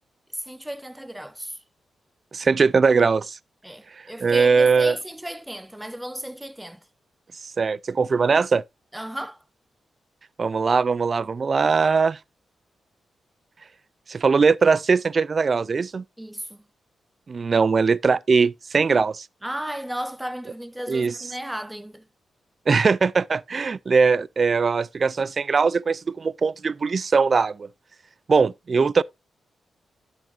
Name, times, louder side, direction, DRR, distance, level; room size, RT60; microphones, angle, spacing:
voice 1, 0.3-1.6 3.6-6.8 8.9-9.4 16.2-16.6 19.4-22.1, right 1 dB, 10° right, 1.0 m, -34 dB
voice 2, 2.3-3.4 4.2-5.0 7.6-8.6 10.4-12.2 14.1-16.0 17.3-19.3 20.9-21.2 22.7-27.7 28.3-29.0, right 5 dB, 50° right, 0.4 m, -20 dB
10.5 x 7.7 x 2.6 m
supercardioid pair, 45°, 0 cm